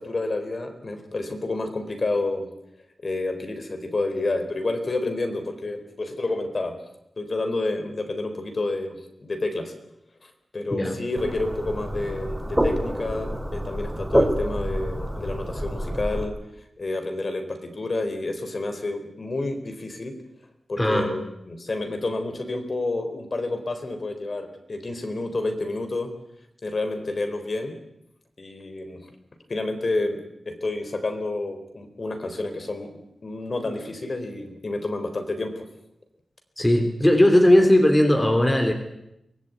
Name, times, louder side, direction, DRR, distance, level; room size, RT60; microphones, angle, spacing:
voice 1, 0.0-2.5 3.0-6.7 7.2-9.7 10.5-16.4 16.8-20.2 20.7-26.1 26.6-27.8 28.4-29.0 29.5-30.2 30.5-32.9 33.2-35.6, left 2 dB, 45° left, 6 dB, 4.1 m, -29 dB
sound 1, 11.2-16.2, right 1 dB, 5° right, 4.5 m, -27 dB
voice 2, 20.8-21.1 36.6-38.7, left 1 dB, 15° left, 5 dB, 3.2 m, -18 dB
24.0 x 20.0 x 9.4 m, 0.84 s
wide cardioid pair, 110°, 0 cm